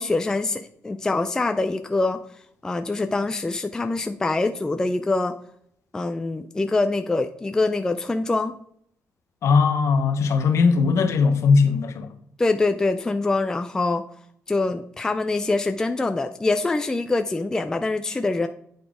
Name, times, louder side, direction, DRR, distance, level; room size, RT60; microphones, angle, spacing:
voice 1, 0.0-2.2 2.6-5.4 5.9-8.6 12.4-14.0 14.5-18.5, left 3 dB, 10° left, 0.3 m, -24 dB
voice 2, 9.4-12.1, left 5 dB, 55° left, 0.9 m, -19 dB
9.2 x 3.9 x 4.9 m
wide cardioid pair, 175°, 6 cm